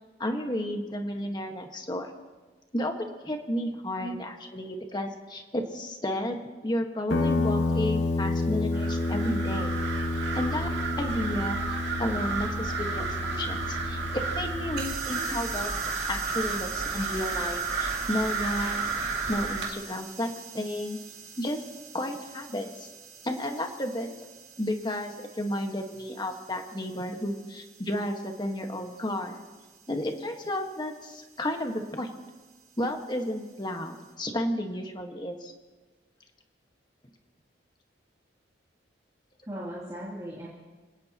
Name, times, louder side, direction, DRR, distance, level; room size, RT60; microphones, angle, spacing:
voice 1, 0.2-2.1 2.7-9.7 10.3-10.7 11.0-15.7 16.1-18.9 19.3-21.0 21.4-21.6 21.9-22.9 23.2-24.1 24.6-29.4 29.9-32.1 32.8-35.5, left 1 dB, 25° left, 4 dB, 1.5 m, -32 dB
Guitar, 7.1-14.9, left 2 dB, 70° left, 2.2 m, -29 dB
sound 1, 8.7-19.7, right 4 dB, 70° right, 2.3 m, -32 dB
sound 2, 14.8-34.1, right 7 dB, 55° right, 3.2 m, -45 dB
voice 2, 39.5-40.5, equal, 20° right, -7 dB, 3.0 m, -37 dB
27.0 x 17.5 x 3.0 m, 1.3 s
head